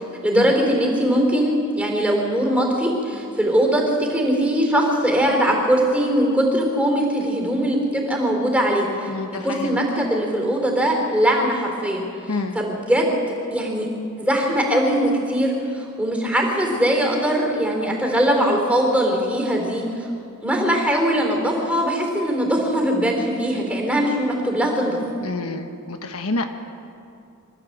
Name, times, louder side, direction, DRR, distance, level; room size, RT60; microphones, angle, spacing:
voice 1, 0.2-9.1 9.4-12.0 12.5-13.2 13.5-13.9 14.2-20.1 20.4-25.0, equal, 5° right, 0 dB, 4.0 m, -21 dB
voice 2, 9.1-9.8 12.3-12.6 25.2-26.5, left 3 dB, 70° left, 6 dB, 1.2 m, -28 dB
25.0 x 13.5 x 8.1 m, 2.6 s
head